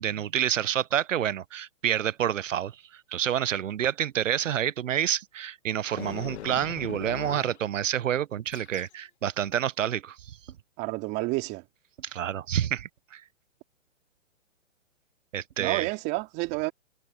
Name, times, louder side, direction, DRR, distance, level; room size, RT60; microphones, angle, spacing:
voice 1, 0.0-2.7 3.1-10.2 12.1-13.2 15.3-15.9, right 10 dB, 80° right, 0.8 m, -28 dB
sound 1, 5.9-7.6 8.5-8.9 9.5-9.6, left 11 dB, 60° left, 1.9 m, -40 dB
voice 2, 10.8-11.6 15.6-16.7, right 23 dB, 25° right, 2.5 m, -29 dB
hypercardioid pair, 140°, 38 cm